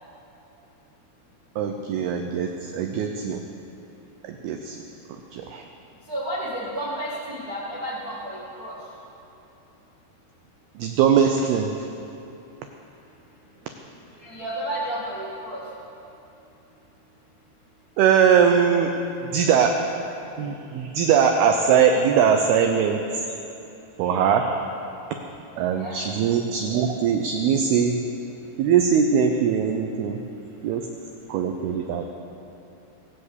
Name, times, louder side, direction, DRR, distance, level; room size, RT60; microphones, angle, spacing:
voice 1, 1.6-3.4 4.4-4.8 5.3-5.6 10.8-11.7 18.0-18.9 19.3-19.8 20.4-23.0 24.0-24.6 25.6-28.0 28.6-30.2 30.6-30.9 31.3-32.0, right 7 dB, 85° right, 5 dB, 2.2 m, -21 dB
voice 2, 6.1-8.7 14.2-15.6 25.6-26.0 26.9-27.0 31.6-31.7, right 1 dB, 40° right, -7 dB, 1.3 m, -32 dB
20.5 x 7.8 x 8.2 m, 2.9 s
omnidirectional pair, 5.4 m